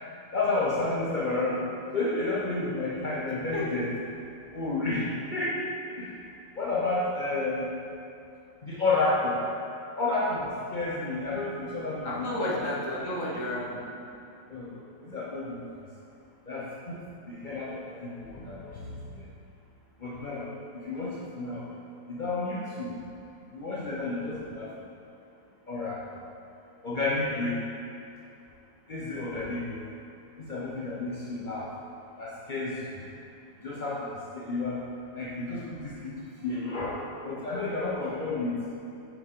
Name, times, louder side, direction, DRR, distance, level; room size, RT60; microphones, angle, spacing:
voice 1, 0.3-1.6 1.9-3.9 4.5-5.6 6.0-6.1 6.6-7.7 8.6-9.4 10.0-12.6 14.5-14.8 15.0-15.6 16.5-19.2 20.0-20.5 20.8-21.6 22.1-22.9 23.5-24.7 25.7-26.0 26.8-27.6 28.9-29.9 30.4-31.7 32.2-33.0 33.6-34.8 35.1-38.5, left 2 dB, 90° left, -6 dB, 0.4 m, -31 dB
voice 2, 3.5-3.8 11.9-13.8, left 1 dB, 50° left, -4 dB, 1.3 m, -32 dB
7.1 x 5.5 x 3.7 m, 2.7 s
omnidirectional pair, 2.0 m